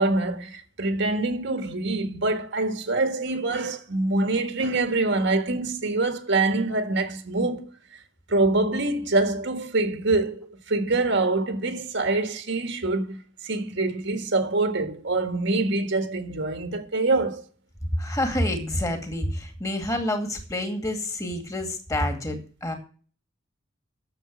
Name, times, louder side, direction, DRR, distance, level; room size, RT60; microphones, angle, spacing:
voice 1, 0.0-8.0 8.3-17.4, right 2 dB, 60° right, 1.8 m, -25 dB
voice 2, 18.0-22.7, left 1 dB, 15° left, 2.2 m, -28 dB
10.0 x 7.2 x 8.7 m
head